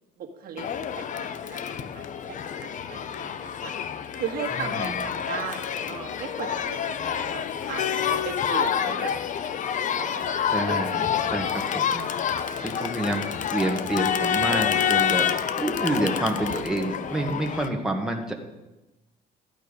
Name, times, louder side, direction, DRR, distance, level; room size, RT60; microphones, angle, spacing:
voice 1, 0.2-0.7 0.9-3.7 4.1-6.8 7.3-9.1 10.0-10.3 10.7-11.1, right 7 dB, 60° right, 2 dB, 1.8 m, -37 dB
Crowd, 0.6-17.7, left 8 dB, 50° left, 0.8 m, -28 dB
voice 2, 4.5-5.0 10.5-13.2 13.5-15.3 15.5-18.3, right 1 dB, 5° right, 1 dB, 1.7 m, -28 dB
13.5 x 9.1 x 5.2 m, 1.0 s
cardioid pair, 110°, 17 cm